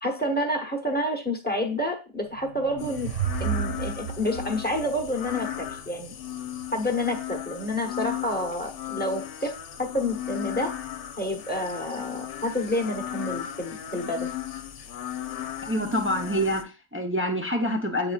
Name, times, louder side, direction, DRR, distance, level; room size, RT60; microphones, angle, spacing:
voice 1, 0.0-3.1 3.4-6.1 6.7-10.7 11.2-14.3, left 1 dB, 10° left, 3 dB, 1.0 m, -29 dB
sound 1, 2.2-5.7, right 9 dB, 85° right, 1.1 m, -32 dB
sound 2, 2.8-16.6, left 11 dB, 75° left, 1.0 m, -36 dB
voice 2, 15.6-18.1, equal, 15° right, 3 dB, 0.6 m, -26 dB
8.4 x 5.0 x 2.4 m, 0.31 s
omnidirectional pair, 1.2 m